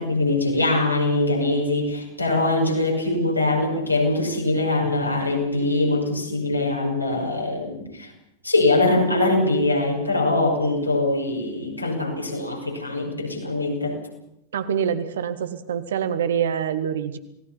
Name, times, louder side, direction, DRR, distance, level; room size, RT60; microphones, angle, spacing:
voice 1, 0.0-8.1 8.4-14.0, left 2 dB, 85° left, 0 dB, 6.0 m, -22 dB
voice 2, 14.5-17.2, right 8 dB, 60° right, 11 dB, 1.8 m, -25 dB
28.0 x 19.0 x 5.8 m, 0.82 s
figure-of-eight pair, 90°, 0 cm